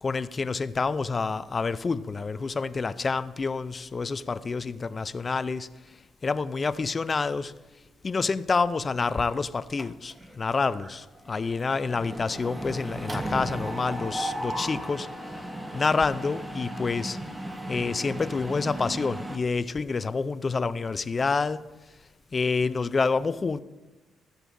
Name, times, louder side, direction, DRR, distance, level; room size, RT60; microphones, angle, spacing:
voice 1, 0.0-6.0 6.2-7.5 8.0-15.5 15.7-17.2 17.7-21.6 22.3-23.6, left 4 dB, 35° left, 0.3 m, -28 dB
Mechanisms, 9.8-10.4 10.7-10.9 11.2-19.4, right 1 dB, 15° right, 0.7 m, -35 dB
12.5 x 7.7 x 2.5 m
cardioid pair, 90°, 0 cm